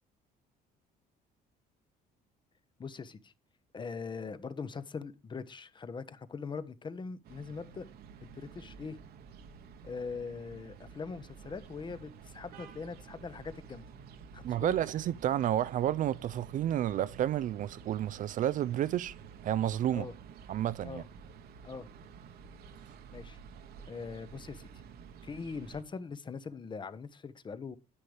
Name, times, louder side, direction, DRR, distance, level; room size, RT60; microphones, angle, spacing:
voice 1, 2.8-3.3 3.7-7.9 8.2-9.0 9.8-13.8 14.3-14.7 19.9-20.1 20.8-21.0 21.6-21.9 23.1-23.4 23.9-24.7 25.2-27.8, left 5 dB, 30° left, 0.8 m, -41 dB
sound 1, 7.2-25.8, right 6 dB, 70° right, 1.1 m, -51 dB
voice 2, 14.4-19.1 19.4-20.1 20.5-21.0, right 11 dB, 50° right, 0.4 m, -30 dB
9.8 x 8.6 x 3.3 m
cardioid pair, 110°, 17 cm